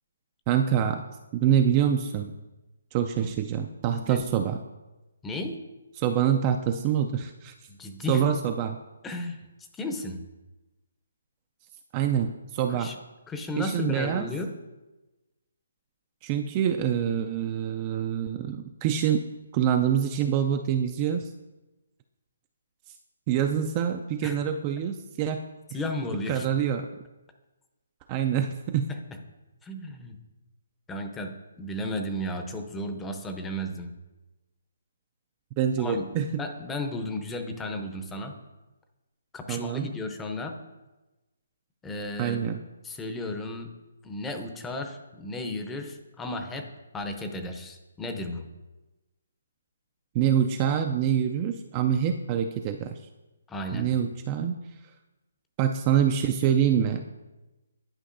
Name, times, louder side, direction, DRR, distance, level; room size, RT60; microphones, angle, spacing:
voice 1, 0.5-1.0 1.3-2.3 2.9-4.6 6.0-7.5 8.1-8.8 11.9-12.9 13.6-14.3 16.2-19.2 19.5-21.3 23.3-25.4 26.3-26.9 28.1-28.9 35.6-36.4 39.5-39.9 42.2-42.6 50.1-53.0 53.7-54.5 55.6-57.0, right 9 dB, 25° right, 5 dB, 0.3 m, -25 dB
voice 2, 5.2-5.6 7.7-8.2 9.0-9.4 9.7-10.2 12.7-13.0 13.3-14.5 24.2-24.4 25.7-26.5 29.6-30.2 30.9-33.9 35.8-36.1 36.4-38.3 39.3-40.6 41.8-42.4 42.8-43.7 44.0-46.7 46.9-48.4 53.5-53.9, left 1 dB, 10° left, 5 dB, 0.6 m, -34 dB
11.0 x 5.1 x 2.6 m, 1.1 s
hypercardioid pair, 160°, 0 cm